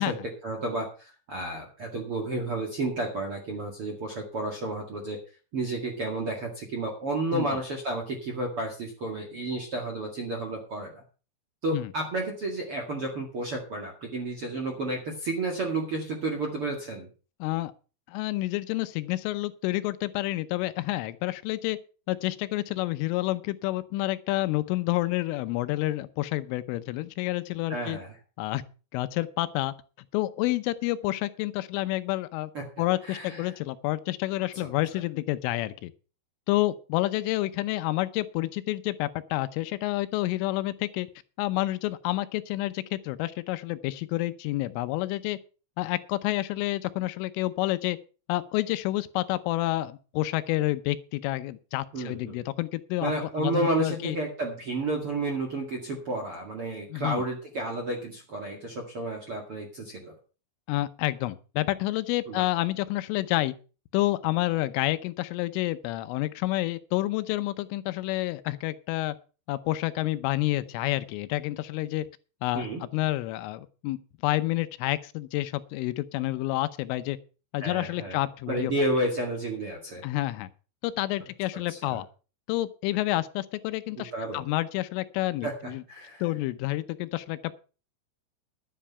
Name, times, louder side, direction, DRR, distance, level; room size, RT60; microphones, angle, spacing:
voice 1, 0.4-5.2 5.5-11.0 11.6-17.1 27.7-28.2 32.5-32.6 33.0-33.5 34.6-34.7 51.9-52.4 53.0-60.1 62.3-62.4 72.5-72.8 77.6-78.2 78.5-80.0 81.7-82.0 84.0-84.4 85.4-86.2, right 2 dB, 50° right, 1 dB, 1.7 m, -31 dB
voice 2, 17.4-17.7 18.1-21.8 22.1-28.0 28.4-28.6 28.9-29.7 30.1-32.5 32.8-35.9 36.5-41.1 41.4-45.4 45.8-48.0 48.3-54.2 56.9-57.2 60.7-63.5 63.9-69.1 69.5-72.1 72.4-74.0 74.2-77.2 77.5-78.7 80.0-80.5 80.8-82.1 82.5-85.8 86.2-87.6, left 17 dB, 85° left, 13 dB, 3.3 m, -29 dB
11.5 x 9.8 x 5.6 m, 0.36 s
omnidirectional pair, 5.6 m